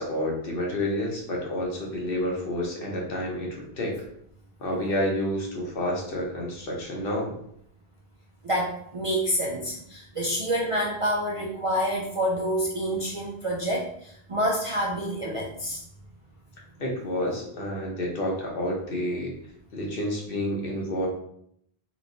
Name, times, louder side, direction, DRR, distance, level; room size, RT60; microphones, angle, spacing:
voice 1, 0.0-3.9 4.6-7.3 16.8-19.3 19.7-21.1, left 1 dB, 65° left, -1 dB, 1.0 m, -29 dB
voice 2, 8.4-15.8, equal, 50° right, -2 dB, 0.4 m, -28 dB
3.0 x 3.0 x 2.6 m, 0.70 s
omnidirectional pair, 1.0 m